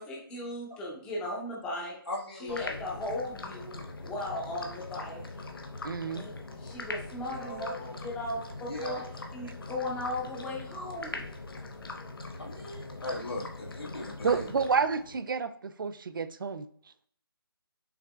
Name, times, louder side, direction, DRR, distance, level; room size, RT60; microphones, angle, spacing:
voice 1, 0.0-2.0 2.4-5.2 6.1-6.3 6.6-7.7 8.0-9.0 9.3-11.2, left 1 dB, 5° left, -3 dB, 0.6 m, -36 dB
voice 2, 2.1-2.8 7.3-8.0 8.6-9.0 12.3-14.5, left 1 dB, 85° left, -2 dB, 1.6 m, -38 dB
sound 1, 2.5-15.2, left 3 dB, 65° left, 0.8 m, -42 dB
voice 3, 5.8-6.2 14.2-16.7, right 5 dB, 60° right, 12 dB, 0.4 m, -29 dB
5.9 x 3.3 x 2.2 m, 0.63 s
figure-of-eight pair, 155°, 13 cm